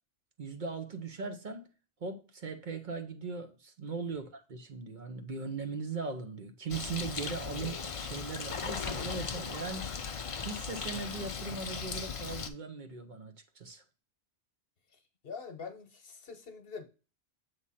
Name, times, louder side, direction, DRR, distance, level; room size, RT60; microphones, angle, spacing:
voice 1, 0.4-1.7 2.0-10.2 10.4-13.8, right 4 dB, 50° right, 0.9 m, -39 dB
Bird, 6.7-12.5, left 6 dB, 40° left, 0.5 m, -38 dB
voice 2, 14.9-16.9, left 5 dB, 60° left, 1.1 m, -45 dB
7.3 x 3.2 x 4.1 m
omnidirectional pair, 1.1 m